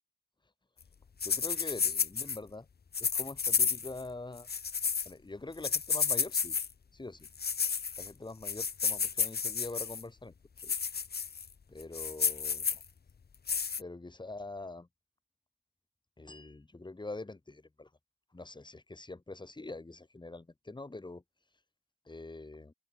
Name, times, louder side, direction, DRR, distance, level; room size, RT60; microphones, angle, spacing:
sound 1, 1.2-2.4 2.9-4.0 4.4-5.1 5.6-6.7 7.2-8.1 8.4-10.0 10.6-11.5 11.8-12.8 13.5-13.8, left 6 dB, 65° left, 1.9 m, -31 dB
voice 1, 1.2-2.7 3.0-4.5 5.0-6.6 6.9-7.3 8.0-10.7 11.7-12.8 13.8-14.9 16.2-17.9 18.3-21.2 22.0-22.7, left 2 dB, 25° left, 6.7 m, -44 dB
open air
wide cardioid pair, 135°, 18 cm